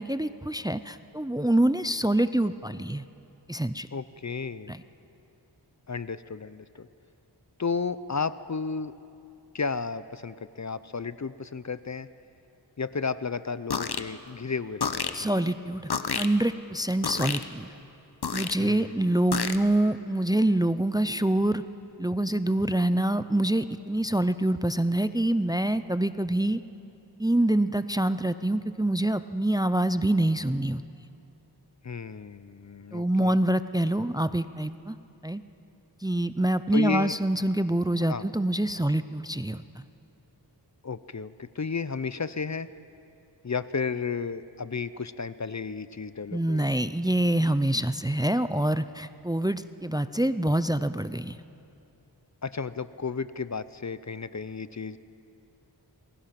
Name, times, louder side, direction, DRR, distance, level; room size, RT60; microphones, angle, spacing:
voice 1, 0.0-3.0 3.5-3.9 4.7-4.8 15.1-15.8 16.2-17.7 18.3-21.6 22.0-26.6 27.2-30.8 32.9-35.0 35.2-35.4 36.0-39.8 46.3-51.4, right 1 dB, 10° right, 13 dB, 0.5 m, -26 dB
voice 2, 3.9-4.7 5.9-6.9 7.6-8.9 9.5-12.1 12.8-15.3 18.6-19.1 31.8-33.4 36.7-37.1 38.1-38.3 40.8-42.7 43.4-46.7 52.4-55.0, left 5 dB, 40° left, 15 dB, 0.6 m, -33 dB
sound 1, 13.7-14.0 14.8-15.2 15.9-16.3 17.0-17.4 18.2-18.5 19.3-19.6, left 6 dB, 60° left, 1.0 m, -29 dB
27.5 x 21.0 x 5.9 m, 2.8 s
wide cardioid pair, 55°, 43 cm